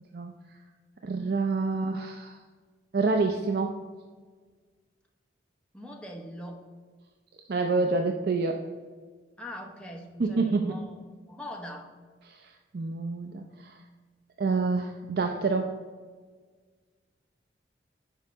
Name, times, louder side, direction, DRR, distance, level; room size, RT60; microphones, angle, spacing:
voice 1, 1.0-2.4 2.9-3.7 7.5-8.6 10.2-10.8 12.3-12.4 12.7-13.8 14.4-15.7, right 3 dB, 60° right, 4 dB, 0.4 m, -27 dB
voice 2, 5.7-6.6 9.4-10.9 11.3-11.9, equal, 5° left, 0 dB, 0.8 m, -41 dB
5.4 x 5.0 x 5.5 m, 1.5 s
head